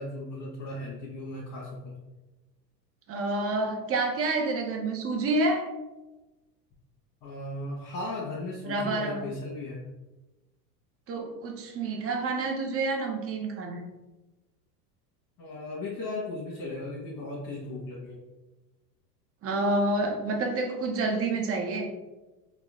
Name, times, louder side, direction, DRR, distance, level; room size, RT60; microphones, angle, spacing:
voice 1, 0.0-2.0 7.2-9.8 15.4-18.2, left 2 dB, 50° left, -6 dB, 1.3 m, -36 dB
voice 2, 3.1-5.7 8.6-9.2 11.1-13.9 19.4-21.9, right 2 dB, 30° right, 3 dB, 0.8 m, -28 dB
4.3 x 2.4 x 3.6 m, 1.1 s
hypercardioid pair, 90°, 48 cm